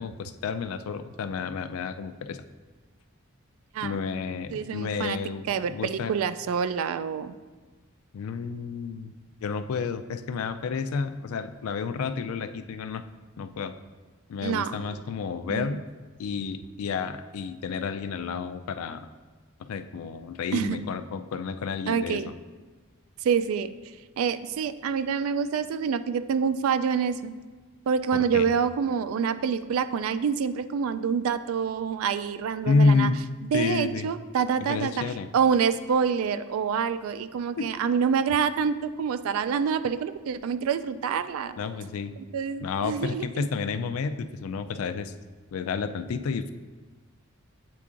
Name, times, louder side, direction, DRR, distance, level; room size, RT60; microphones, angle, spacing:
voice 1, 0.0-2.4 3.8-6.1 8.1-9.1 9.4-13.0 13.4-13.7 14.3-15.8 16.2-19.1 19.7-22.3 28.1-28.5 32.7-33.2 33.5-34.1 34.6-35.3 37.6-37.7 41.6-42.1 42.6-45.1 45.5-46.5, left 4 dB, 90° left, 10 dB, 0.4 m, -30 dB
voice 2, 4.5-5.2 5.5-7.3 14.4-14.7 15.5-15.8 20.5-20.8 21.9-22.3 23.2-23.7 24.2-27.3 27.9-33.1 33.4-35.0 35.3-41.6 42.2-43.5, right 6 dB, 75° right, 13 dB, 0.3 m, -27 dB
8.4 x 4.5 x 2.5 m, 1.4 s
head